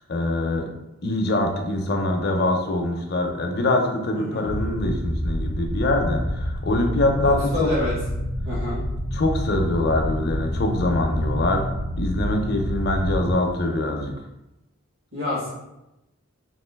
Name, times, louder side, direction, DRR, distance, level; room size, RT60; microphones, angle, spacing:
voice 1, 0.1-0.7 1.0-7.7 9.1-11.6 12.0-14.1, left 2 dB, 50° left, 3 dB, 0.5 m, -24 dB
sound 1, 4.4-13.3, equal, 50° right, 1.1 m, -28 dB
voice 2, 7.2-7.9 8.4-8.8 15.1-15.5, left 2 dB, 70° right, -6 dB, 1.5 m, -27 dB
2.9 x 2.6 x 3.3 m, 0.92 s
head